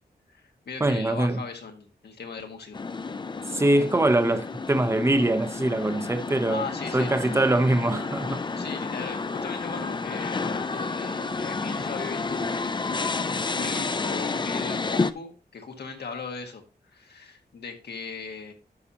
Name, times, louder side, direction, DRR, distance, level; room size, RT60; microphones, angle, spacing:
voice 1, 0.3-2.8 6.5-7.1 8.6-12.8 13.2-16.6 16.9-18.5, left 5 dB, 85° left, 1.7 m, -38 dB
voice 2, 0.8-1.4 3.5-6.6 6.9-8.4, right 1 dB, 15° right, 0.7 m, -23 dB
sound 1, 2.7-15.1, left 4 dB, 30° left, 0.5 m, -30 dB
12.0 x 5.6 x 2.8 m
wide cardioid pair, 135°, 17 cm